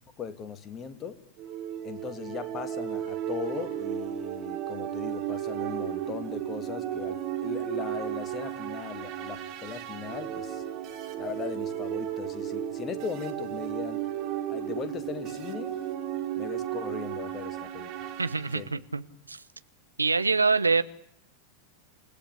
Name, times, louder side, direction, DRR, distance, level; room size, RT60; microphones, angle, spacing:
voice 1, 0.2-1.2 1.8-10.6 11.2-14.0 14.5-15.7 16.4-18.1 18.5-18.7, left 7 dB, 25° left, 10 dB, 2.5 m, -38 dB
sound 1, 1.4-18.6, right 11 dB, 40° right, 3.7 m, -34 dB
voice 2, 18.2-19.0 19.3-19.4 20.0-20.8, right 4 dB, 80° right, 13 dB, 1.1 m, -25 dB
28.5 x 17.0 x 9.8 m, 0.67 s
figure-of-eight pair, 90°, 0 cm